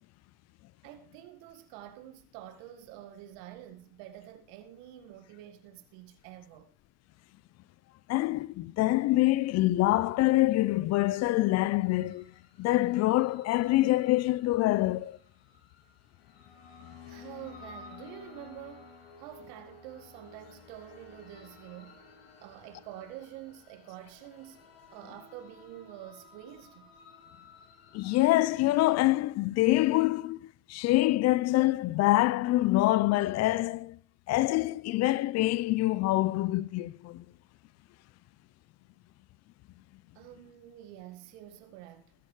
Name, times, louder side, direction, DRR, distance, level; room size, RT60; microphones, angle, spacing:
voice 1, 0.8-6.7 17.1-18.9 19.2-22.0 22.4-24.6 24.9-26.9 40.1-42.1, right 12 dB, 75° right, 2.0 m, -47 dB
voice 2, 8.1-12.3 12.6-15.2 27.9-30.4 30.7-34.0 34.3-37.2, left 17 dB, 60° left, 0.8 m, -25 dB
sound 1, 11.7-28.5, left 4 dB, 90° left, 2.6 m, -54 dB
21.5 x 10.5 x 3.3 m
hypercardioid pair, 55°, 29 cm